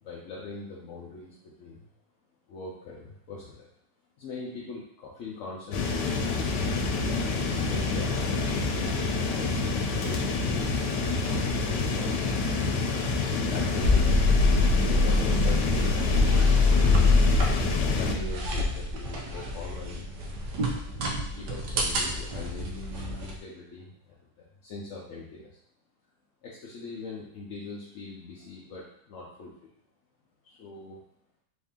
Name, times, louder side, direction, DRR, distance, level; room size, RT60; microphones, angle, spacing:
voice 1, 0.0-1.9 2.5-3.7 4.2-6.5 7.2-8.6 9.2-10.9 11.5-12.2 13.4-14.2 14.4-16.0 17.8-20.0 21.3-22.9 23.2-25.6 26.4-29.7 30.4-31.0, left 3 dB, 60° left, -4 dB, 0.8 m, -41 dB
sound 1, 5.7-18.2, left 3 dB, 85° left, 1.3 m, -28 dB
sound 2, 13.8-23.4, left 2 dB, 90° right, 1.4 m, -25 dB
4.1 x 2.7 x 3.5 m, 0.70 s
omnidirectional pair, 1.8 m